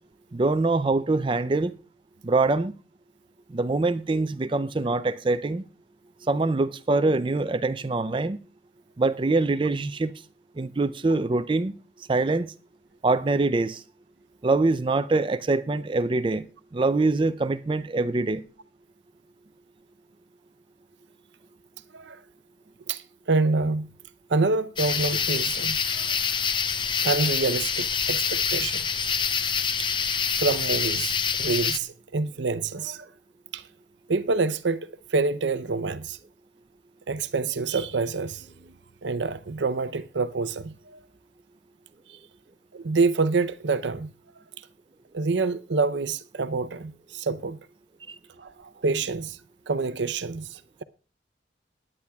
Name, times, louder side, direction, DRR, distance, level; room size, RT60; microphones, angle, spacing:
voice 1, 0.3-1.7 2.2-2.7 3.5-5.6 6.2-8.4 9.0-10.1 10.6-11.7 12.1-12.5 13.0-13.8 14.4-16.5 16.7-18.4, right 3 dB, 30° right, 0.4 m, -24 dB
voice 2, 22.9-23.9 24.3-26.2 27.0-28.9 29.8-29.9 30.4-33.1 33.5-33.6 34.1-36.2 37.1-38.7 39.0-41.0 42.7-44.1 45.1-47.6 48.4-49.4 49.7-50.8, right 3 dB, 90° right, 0.6 m, -27 dB
sound 1, 24.8-31.8, left 6 dB, 25° left, 0.5 m, -26 dB
20.5 x 9.8 x 2.3 m
head